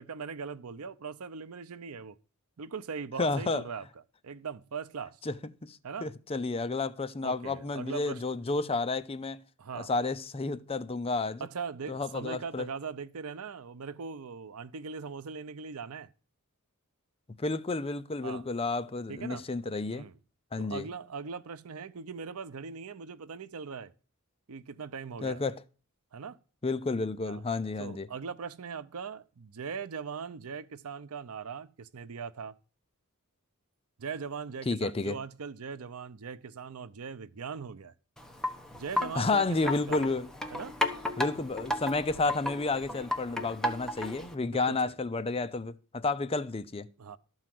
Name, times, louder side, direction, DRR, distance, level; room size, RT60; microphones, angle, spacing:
voice 1, 0.0-2.2 2.6-3.8 4.2-5.2 5.8-6.1 7.2-8.2 9.6-9.9 11.4-16.1 18.2-18.4 19.1-19.4 19.9-20.1 20.6-23.9 24.5-25.4 26.1-26.4 27.2-27.4 27.8-32.5 34.0-37.9 38.7-40.0 40.5-40.7 44.5-45.0 47.0-47.2, right 5 dB, 80° right, 0.6 m, -40 dB
voice 2, 3.2-3.6 5.3-5.4 5.6-9.4 9.8-11.5 11.9-12.7 17.4-20.1 20.5-20.8 25.2-25.6 26.6-28.1 34.7-35.2 39.2-40.3 41.2-46.9, left 3 dB, 25° left, 0.6 m, -31 dB
Wind chime, 38.2-44.3, left 1 dB, 5° left, 1.2 m, -34 dB
13.0 x 4.8 x 7.6 m
head